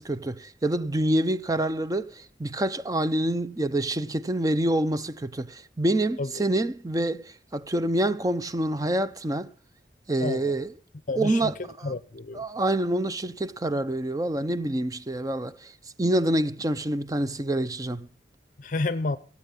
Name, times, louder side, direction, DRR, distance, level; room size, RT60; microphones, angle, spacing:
voice 1, 0.0-9.5 10.1-10.7 11.2-11.9 12.3-15.7 16.0-18.1, right 1 dB, 20° right, 0.5 m, -27 dB
voice 2, 10.2-10.5 11.1-11.5 11.8-12.4 18.6-19.2, left 3 dB, 45° left, 0.7 m, -30 dB
16.5 x 8.4 x 7.1 m
head